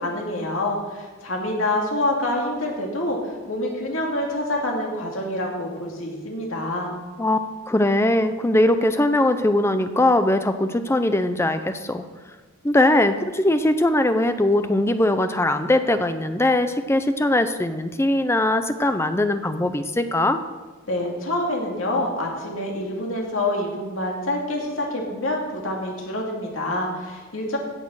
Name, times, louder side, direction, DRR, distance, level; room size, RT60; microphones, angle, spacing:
voice 1, 0.0-6.9 20.9-27.6, left 1 dB, 75° left, -1 dB, 2.5 m, -26 dB
voice 2, 7.7-12.0 12.6-20.4, left 1 dB, 10° left, 9 dB, 0.5 m, -20 dB
16.5 x 6.6 x 6.3 m, 1.3 s
head